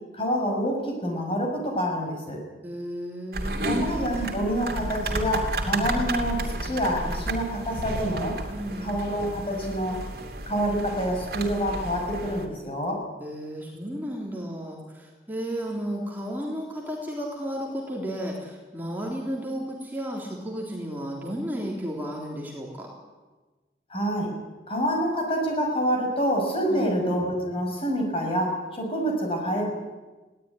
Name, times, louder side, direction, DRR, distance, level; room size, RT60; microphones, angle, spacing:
voice 1, 0.1-2.4 3.6-8.4 8.8-10.0 10.5-13.0 23.9-24.3 24.7-29.7, equal, 30° left, 1 dB, 6.8 m, -27 dB
voice 2, 2.6-3.8 8.5-9.0 13.2-22.9 26.7-27.1, equal, 10° right, -2 dB, 3.6 m, -33 dB
sound 1, 3.3-12.5, right 2 dB, 60° right, 2.8 m, -32 dB
21.0 x 17.0 x 10.0 m, 1.2 s
head